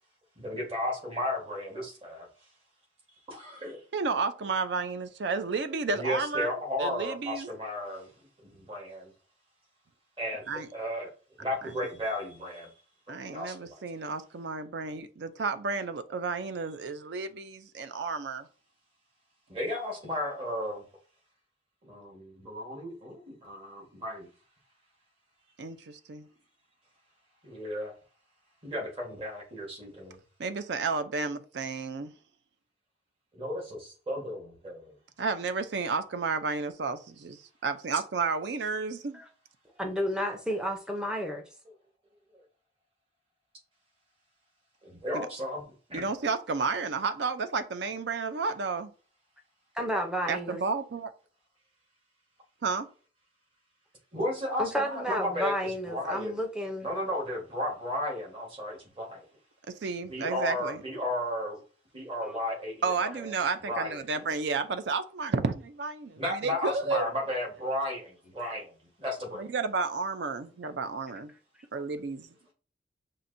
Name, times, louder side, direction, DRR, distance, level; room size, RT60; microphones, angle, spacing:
voice 1, 0.4-2.3 3.3-3.8 5.9-9.1 10.2-11.1 11.4-12.7 13.2-13.8 19.5-20.8 21.8-24.3 27.4-27.9 28.6-30.2 33.3-34.9 42.3-42.4 44.8-45.6 45.9-46.1 54.1-56.4 56.8-59.2 60.1-61.6 61.9-63.3 63.7-64.0 66.2-69.5, left 1 dB, 30° right, 1.3 m, -34 dB
voice 2, 3.9-6.5 6.8-7.5 10.5-10.7 13.1-18.5 25.6-26.3 30.4-32.1 35.2-39.2 45.1-45.3 45.9-48.9 50.3-51.1 52.6-52.9 59.8-60.8 62.8-67.0 69.4-71.3 71.7-72.3, right 4 dB, 65° right, 0.4 m, -32 dB
voice 3, 39.8-41.4 49.8-50.6 54.6-56.9, equal, 5° right, 0.6 m, -31 dB
5.6 x 2.5 x 2.6 m
head